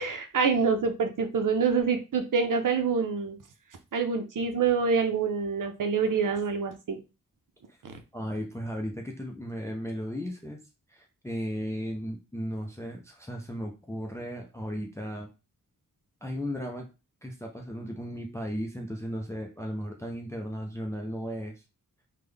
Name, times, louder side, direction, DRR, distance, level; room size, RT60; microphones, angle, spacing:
voice 1, 0.0-3.4 3.9-7.0 7.8-7.9, right 5 dB, 65° right, 6 dB, 0.6 m, -26 dB
voice 2, 8.1-10.6 10.9-15.3 16.2-16.9 17.2-21.6, equal, 10° left, 2 dB, 0.5 m, -35 dB
3.5 x 2.2 x 3.3 m, 0.29 s
wide cardioid pair, 70°, 34 cm